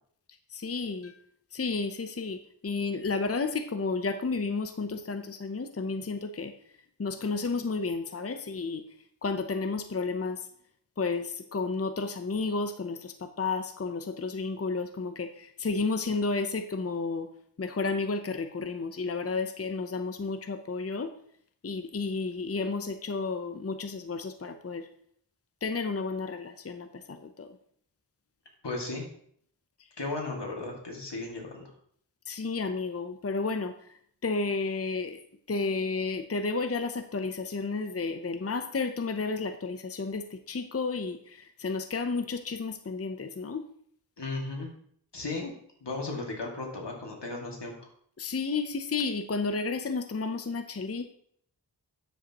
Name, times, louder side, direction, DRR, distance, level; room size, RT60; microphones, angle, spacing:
voice 1, 0.6-1.1 1.5-2.4 2.6-6.5 7.0-8.8 9.2-10.4 11.0-15.3 15.6-17.3 17.6-21.1 21.6-24.8 25.6-26.9 27.4-27.5 32.3-33.7 34.2-35.2 35.5-41.2 41.6-43.6 48.2-51.1, left 4 dB, 35° left, 8 dB, 0.6 m, -31 dB
voice 2, 28.6-29.1 30.0-31.7 44.2-44.7 45.1-45.5 45.8-47.9, left 3 dB, 85° left, 0 dB, 2.1 m, -35 dB
9.9 x 7.8 x 2.9 m, 0.64 s
wide cardioid pair, 50°, 40 cm